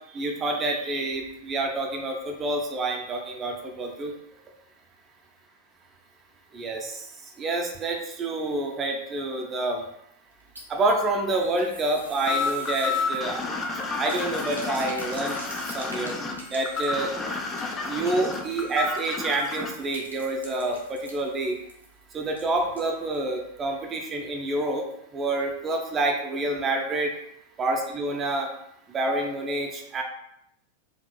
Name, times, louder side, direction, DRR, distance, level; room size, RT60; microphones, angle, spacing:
voice 1, 0.1-4.1 6.5-7.0 7.4-9.8 10.7-13.5 14.0-15.4 15.7-16.1 16.5-17.1 17.9-21.6 22.1-24.8 25.1-27.1 27.6-28.5 28.9-30.0, right 2 dB, 25° right, 2 dB, 0.6 m, -28 dB
sound 1, 10.3-23.3 23.6-23.7 24.0-24.1, right 1 dB, 85° right, 0.9 m, -46 dB
sound 2, 12.3-19.7, left 4 dB, 20° left, 0.6 m, -30 dB
4.9 x 2.8 x 2.3 m, 0.77 s
figure-of-eight pair, 90°, 0 cm